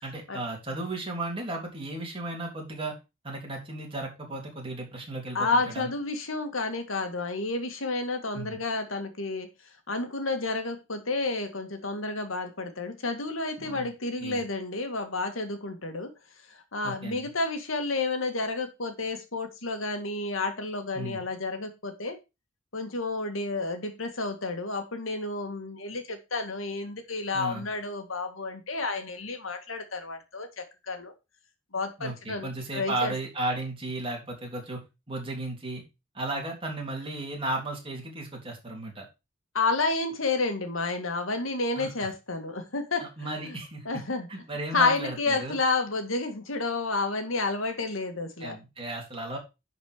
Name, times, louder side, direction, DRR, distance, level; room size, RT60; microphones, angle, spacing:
voice 1, 0.0-2.9 3.2-5.9 8.3-8.6 13.6-13.9 14.2-14.4 16.8-17.3 20.9-21.2 27.3-27.6 32.0-34.8 35.1-35.8 36.1-39.1 41.8-42.1 43.0-44.0 44.3-45.6 48.4-49.4, right 2 dB, 25° right, 3.3 m, -35 dB
voice 2, 5.3-9.5 9.9-16.1 16.5-22.2 22.7-31.1 31.7-33.1 39.5-43.6 43.9-44.3 44.7-48.6, left 3 dB, 85° left, 1.9 m, -30 dB
10.5 x 4.9 x 5.0 m
head